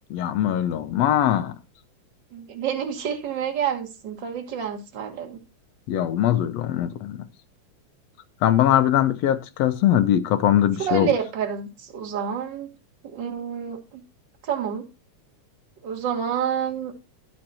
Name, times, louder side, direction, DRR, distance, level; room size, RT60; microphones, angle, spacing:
voice 1, 0.1-1.6 5.9-7.2 8.4-11.1, left 11 dB, 75° left, 1.7 m, -21 dB
voice 2, 2.3-5.4 10.8-12.7 13.0-14.0 14.4-14.8 15.8-16.9, right 8 dB, 45° right, 2.0 m, -28 dB
12.0 x 5.4 x 4.1 m
omnidirectional pair, 3.3 m